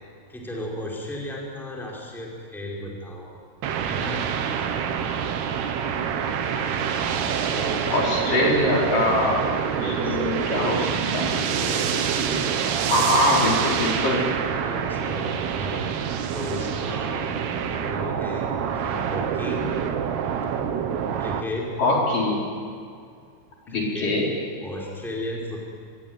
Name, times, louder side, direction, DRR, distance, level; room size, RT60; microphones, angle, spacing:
voice 1, 0.3-3.3 3.8-4.2 7.5-8.0 9.8-11.3 11.6-12.5 14.6-15.8 16.3-17.3 17.7-18.5 18.7-19.7 21.2-21.7 23.7-24.2 24.6-25.6, left 1 dB, ahead, -3 dB, 5.0 m, -34 dB
sound 1, 3.6-21.4, right 7 dB, 80° right, 3.5 m, -26 dB
voice 2, 7.9-10.8 11.1-11.3 12.9-14.2 21.8-22.4 23.7-24.3, left 1 dB, 55° left, -3 dB, 6.2 m, -23 dB
26.5 x 22.0 x 9.5 m, 2.2 s
omnidirectional pair, 4.6 m